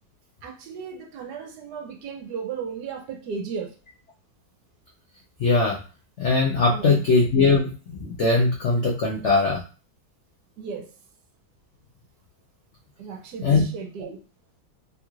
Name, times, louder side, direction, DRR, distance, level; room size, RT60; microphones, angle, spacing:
voice 1, 0.4-3.7 6.7-7.0 10.6-10.8 13.0-14.2, right 6 dB, 75° right, 4 dB, 1.1 m, -35 dB
voice 2, 5.4-5.8 6.2-9.6 13.4-13.6, left 3 dB, 80° left, -1 dB, 0.6 m, -20 dB
3.3 x 2.4 x 3.0 m, 0.36 s
omnidirectional pair, 1.9 m